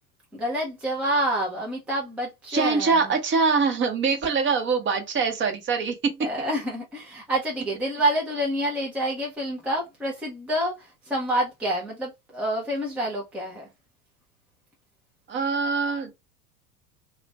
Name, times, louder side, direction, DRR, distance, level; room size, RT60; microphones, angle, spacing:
voice 1, 0.3-3.1 6.2-13.7, right 1 dB, 5° right, 0.3 m, -28 dB
voice 2, 2.5-6.3 15.3-16.2, right 4 dB, 25° right, 0.7 m, -24 dB
2.4 x 2.1 x 3.2 m
figure-of-eight pair, 80°, 46 cm